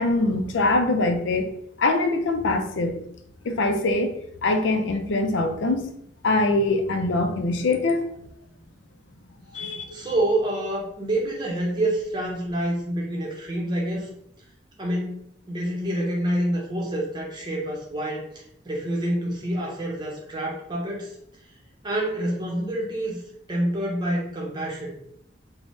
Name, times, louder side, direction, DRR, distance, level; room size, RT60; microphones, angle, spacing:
voice 1, 0.0-1.5 1.8-3.0 3.4-4.1 4.4-5.9 6.2-8.1 9.5-10.0, left 2 dB, 75° left, 5 dB, 0.4 m, -23 dB
voice 2, 9.9-14.1 14.8-15.2 15.5-21.1 21.8-23.2 23.5-25.0, right 1 dB, 25° right, -2 dB, 0.7 m, -27 dB
3.6 x 2.1 x 2.6 m, 0.71 s
head